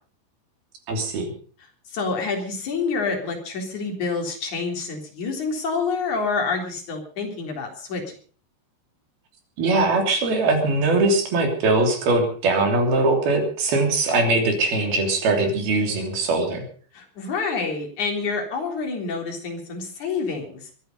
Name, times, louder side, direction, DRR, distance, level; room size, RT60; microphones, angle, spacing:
voice 1, 0.9-1.3 9.6-16.7, right 2 dB, 60° right, 4 dB, 4.9 m, -21 dB
voice 2, 1.9-8.1 16.9-20.7, left 4 dB, 45° left, 2 dB, 4.7 m, -27 dB
23.0 x 11.0 x 5.3 m, 0.43 s
omnidirectional pair, 5.0 m